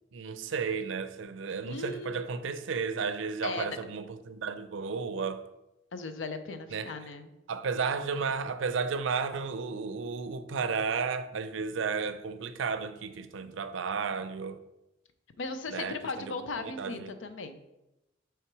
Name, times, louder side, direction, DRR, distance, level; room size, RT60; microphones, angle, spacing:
voice 1, 0.1-5.4 6.7-6.9 7.5-14.6 15.7-17.1, right 5 dB, 80° right, 0.4 m, -33 dB
voice 2, 1.5-2.3 3.4-3.8 5.9-7.3 15.4-17.6, left 3 dB, 80° left, 0.6 m, -37 dB
5.9 x 3.5 x 4.7 m
head